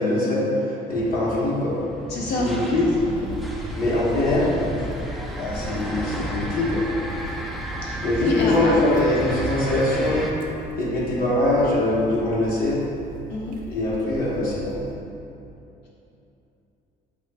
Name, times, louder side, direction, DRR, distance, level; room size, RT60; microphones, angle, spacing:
voice 1, 0.0-1.8 2.4-2.8 3.8-4.9 5.3-6.9 8.0-10.3 10.8-12.8 13.7-14.8, left 1 dB, 60° left, -7 dB, 1.1 m, -22 dB
sound 1, 0.9-10.3, equal, ahead, 0.3 m, -33 dB
voice 2, 2.1-2.5 3.0-3.3 7.8-8.7 13.3-13.6, left 2 dB, 80° left, -4 dB, 0.8 m, -28 dB
sound 2, 2.9-15.0, right 2 dB, 55° right, 0.5 m, -39 dB
4.7 x 2.4 x 3.3 m, 2.8 s
cardioid pair, 110°, 17 cm